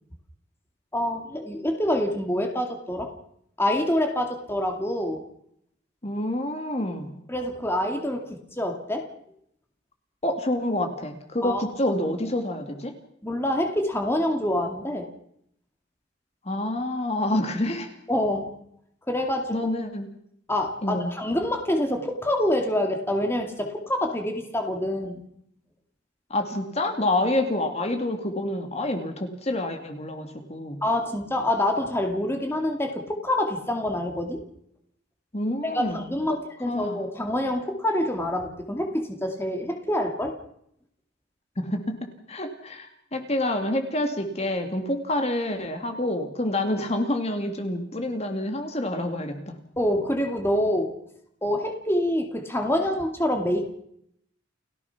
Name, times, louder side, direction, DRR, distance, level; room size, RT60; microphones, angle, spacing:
voice 1, 0.9-3.1 3.6-5.2 7.3-9.1 11.4-11.6 13.2-15.1 18.1-18.5 19.1-19.7 20.5-25.2 30.8-34.4 35.6-40.3 49.8-50.9 51.4-53.7, left 1 dB, 15° left, 3 dB, 2.3 m, -26 dB
voice 2, 6.0-7.1 10.2-12.9 16.5-17.9 19.5-20.1 20.8-21.1 26.3-30.8 35.3-36.1 36.7-37.0 41.6-49.6, left 1 dB, 35° left, 5 dB, 2.3 m, -28 dB
30.0 x 15.5 x 5.9 m, 0.71 s
head